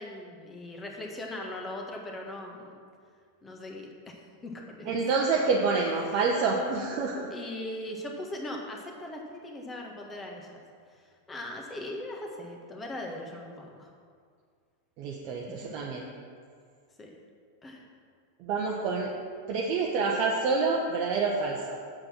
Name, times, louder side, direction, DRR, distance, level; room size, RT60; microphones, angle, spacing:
voice 1, 0.0-2.8 3.4-4.9 7.3-10.6 10.9-13.9 15.5-15.6 17.0-17.2 17.6-17.9, left 1 dB, 15° left, 1 dB, 1.6 m, -40 dB
voice 2, 4.9-7.3 15.0-16.0 18.4-19.1 19.5-21.8, right 4 dB, 40° right, -2 dB, 1.0 m, -27 dB
7.7 x 7.5 x 6.1 m, 2.1 s
figure-of-eight pair, 90°, 0 cm